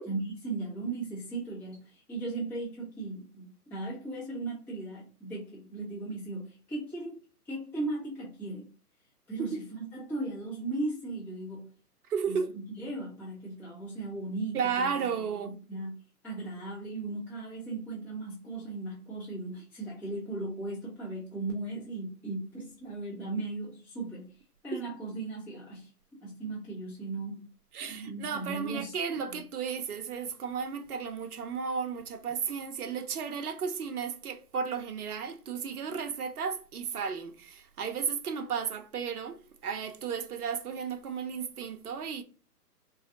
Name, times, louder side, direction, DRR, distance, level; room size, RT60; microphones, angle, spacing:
voice 1, 0.0-7.1 7.4-8.7 9.3-11.7 12.3-24.3 24.6-25.9 26.2-27.4 27.9-29.0 29.3-29.4, right 2 dB, 5° left, 0.7 m, -37 dB
voice 2, 12.1-12.5 14.5-15.5 24.7-24.8 27.7-42.2, right 6 dB, 65° right, 0.7 m, -34 dB
4.0 x 2.3 x 2.6 m
figure-of-eight pair, 130°, 48 cm